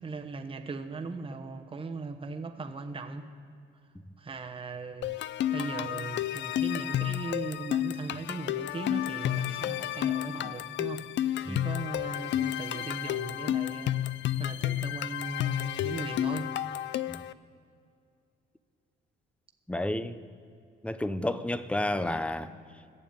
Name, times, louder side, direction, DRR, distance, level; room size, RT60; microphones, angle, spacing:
voice 1, 0.0-3.2 4.2-5.1 5.5-11.0 11.5-14.0 14.4-16.5, right 3 dB, 25° right, 1.1 m, -38 dB
sound 1, 5.0-17.3, left 12 dB, 65° left, 0.4 m, -31 dB
voice 2, 19.7-20.2 20.8-22.5, left 1 dB, 5° left, 0.6 m, -31 dB
14.0 x 7.1 x 8.7 m
cardioid pair, 90°, 20 cm